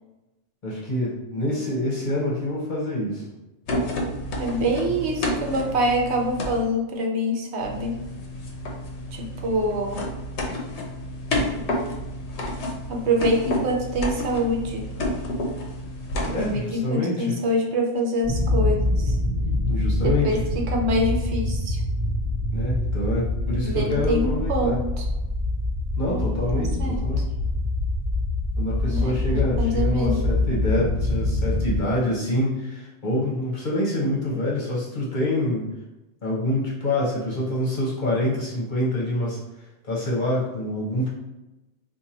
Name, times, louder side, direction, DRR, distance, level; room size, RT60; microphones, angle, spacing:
voice 1, 0.6-3.2 16.3-17.3 19.7-20.4 22.5-24.8 26.0-27.3 28.6-35.7 36.2-39.4 39.9-41.1, left 1 dB, 50° left, -5 dB, 1.0 m, -26 dB
sound 1, 3.7-6.6 7.6-16.6, left 1 dB, 85° left, 1.0 m, -30 dB
voice 2, 4.4-8.0 9.1-10.0 12.9-14.8 16.3-19.1 20.0-21.8 23.6-25.0 26.0-26.2 26.5-27.2 28.9-30.2, equal, 80° right, 1 dB, 1.0 m, -25 dB
sound 2, 18.2-31.8, left 2 dB, 30° right, 1.2 m, -25 dB
2.9 x 2.6 x 3.8 m, 1.0 s
omnidirectional pair, 1.1 m